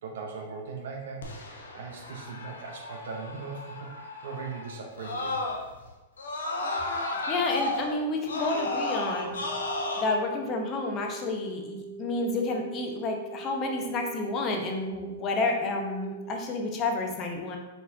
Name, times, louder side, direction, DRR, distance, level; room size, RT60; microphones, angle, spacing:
voice 1, 0.0-5.4, right 4 dB, 70° right, 1 dB, 0.6 m, -39 dB
Screaming, 1.2-5.8 6.2-10.0, left 2 dB, 85° left, 0.7 m, -33 dB
voice 2, 7.3-9.3 10.0-17.6, left 3 dB, 35° left, 2 dB, 0.8 m, -30 dB
sound 1, 8.5-16.5, right 6 dB, 15° right, 0.4 m, -43 dB
4.1 x 3.9 x 2.7 m, 1.1 s
hypercardioid pair, 115°, 0 cm